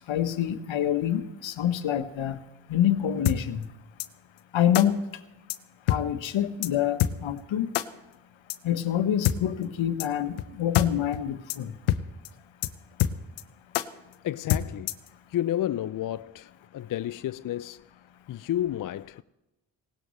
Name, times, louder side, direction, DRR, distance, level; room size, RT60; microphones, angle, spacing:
voice 1, 0.0-2.4 2.7-3.6 4.5-5.0 5.9-7.7 8.6-11.7, left 10 dB, 65° left, 1.2 m, -26 dB
sound 1, 3.3-3.4 4.0-4.1 4.7-4.9 5.5-5.6 5.9-6.0 6.3-6.4 6.6-6.7 7.0-7.1 7.7-7.9 8.5-8.6 9.2-9.4 10.0-10.1 10.4-10.5 10.7-10.9 11.1-11.2 11.5-11.6 11.9-12.0 12.3-12.4 12.6-12.7 13.0-13.4 13.7-13.9 14.5-15.1, left 13 dB, 80° left, 0.8 m, -25 dB
voice 2, 14.2-14.9 15.3-17.8 18.3-19.2, left 12 dB, 45° left, 0.4 m, -31 dB
19.5 x 17.5 x 3.2 m
hypercardioid pair, 45°, 50 cm